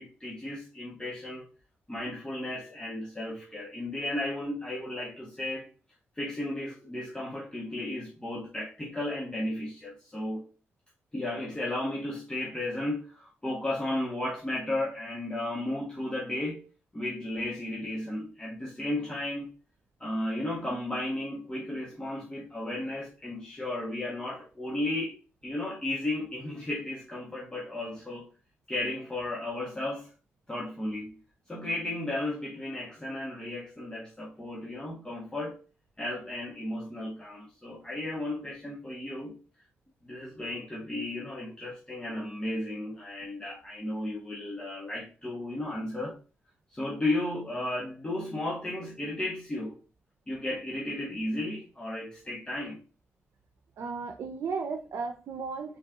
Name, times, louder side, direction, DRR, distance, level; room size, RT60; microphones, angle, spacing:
voice 1, 0.0-1.5 1.9-5.7 6.2-10.4 11.1-16.6 16.9-19.5 20.0-25.1 25.4-28.3 28.7-30.1 30.5-31.1 31.5-35.6 36.0-39.3 40.0-46.1 46.7-49.7 50.3-52.8, left 1 dB, 15° left, 1.4 m, -34 dB
voice 2, 53.8-55.8, right 5 dB, 80° right, 0.7 m, -35 dB
4.2 x 3.3 x 3.6 m
cardioid pair, 90°, 5 cm